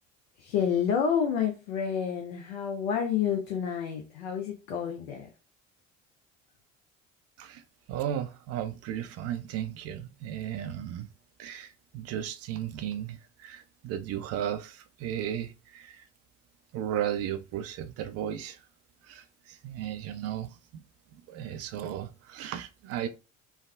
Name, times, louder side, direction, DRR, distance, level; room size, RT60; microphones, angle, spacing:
voice 1, 0.4-5.3, left 7 dB, 65° left, 0.6 m, -29 dB
voice 2, 7.9-11.1 11.4-16.0 16.7-18.6 19.1-20.8 21.3-23.1, right 10 dB, 40° right, 0.4 m, -35 dB
3.3 x 2.0 x 2.3 m
figure-of-eight pair, 60°, 38 cm